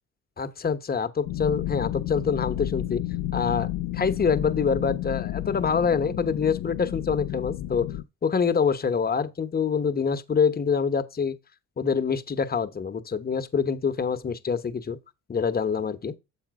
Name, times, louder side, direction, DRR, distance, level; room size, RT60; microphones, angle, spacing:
voice 1, 0.4-3.0 3.3-7.9 8.2-11.4 11.8-15.0 15.3-16.1, left 6 dB, 30° left, 0.9 m, -25 dB
sound 1, 1.3-8.0, left 14 dB, 90° left, 0.5 m, -31 dB
7.2 x 5.0 x 4.7 m
cardioid pair, 90°, 30 cm